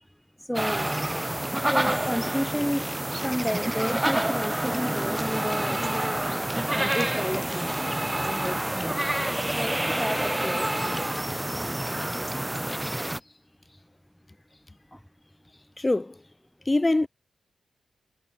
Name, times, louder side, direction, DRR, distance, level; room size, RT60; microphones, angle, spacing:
voice 1, 0.5-0.9 1.6-2.8 3.2-5.8 6.7-7.7 8.2-9.0 9.5-11.1, equal, 5° left, 3.4 m, -31 dB
sound 1, 0.5-13.2, right 1 dB, 15° right, 1.1 m, -28 dB
voice 2, 15.8-16.2 16.6-17.1, left 2 dB, 25° left, 2.7 m, -23 dB
supercardioid pair, 45°, 0 cm